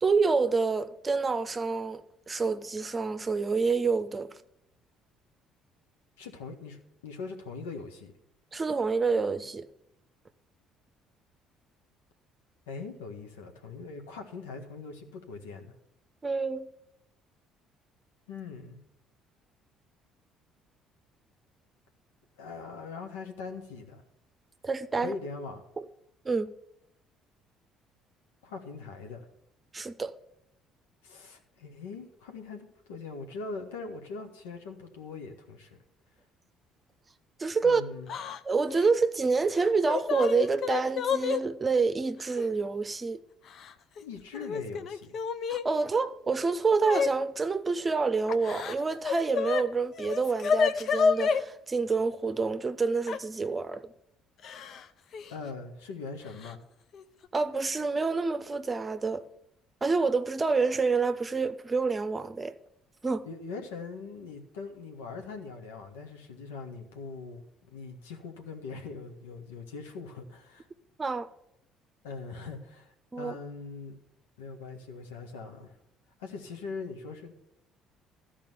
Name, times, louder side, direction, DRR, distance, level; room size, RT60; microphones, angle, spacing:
voice 1, 0.0-4.3 8.5-9.7 16.2-16.7 24.6-25.1 26.2-26.5 29.7-30.1 37.4-37.8 38.4-43.2 45.5-53.9 57.3-59.2 59.8-62.6 63.0-63.3 71.0-71.3 73.1-73.3, right 4 dB, 25° right, 0.8 m, -27 dB
voice 2, 6.2-8.1 12.7-15.7 18.3-18.8 22.4-24.0 24.9-25.6 28.4-29.2 31.0-35.8 37.6-38.1 44.0-45.2 55.3-56.6 63.2-70.7 72.0-74.0 74.4-75.7 76.2-77.3, left 4 dB, 75° left, 1.5 m, -41 dB
Yell / Crying sobbing, 38.1-38.4 38.7-38.9 39.6-41.4 42.4-42.5 43.5-44.0 44.3-45.6 46.8-47.1 48.3-49.6 49.9-51.4 53.1-53.2 54.4-54.8 55.1-55.3 56.4-56.5 56.9-57.3, left 6 dB, 55° left, 0.7 m, -29 dB
13.5 x 4.9 x 9.1 m
figure-of-eight pair, 55°, 0 cm